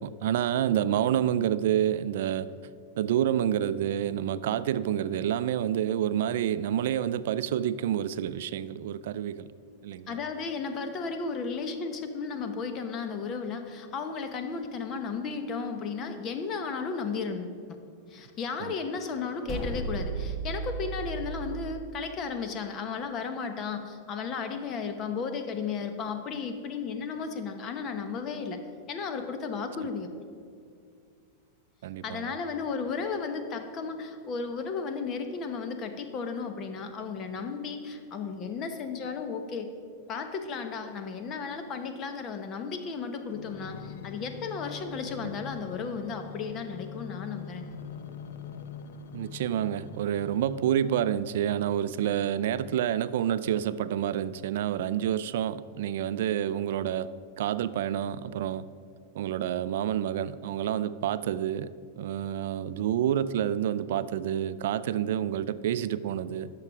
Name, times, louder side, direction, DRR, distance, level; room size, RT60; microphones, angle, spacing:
voice 1, 0.0-2.5 3.0-9.5 9.8-10.2 18.6-18.7 31.8-32.4 49.1-57.1 57.4-58.7 59.1-61.7 62.0-66.5, right 10 dB, 70° right, 15 dB, 0.4 m, -28 dB
voice 2, 10.1-17.6 18.1-28.6 28.9-30.2 32.0-39.7 40.1-47.8, left 5 dB, 35° left, 7 dB, 1.0 m, -34 dB
sound 1, 19.5-21.5, right 3 dB, 20° left, 2.6 m, -34 dB
sound 2, 43.3-51.3 51.9-53.1 53.8-53.9, left 6 dB, 80° left, 0.6 m, -44 dB
11.0 x 6.8 x 4.9 m, 2.3 s
supercardioid pair, 135°, 0 cm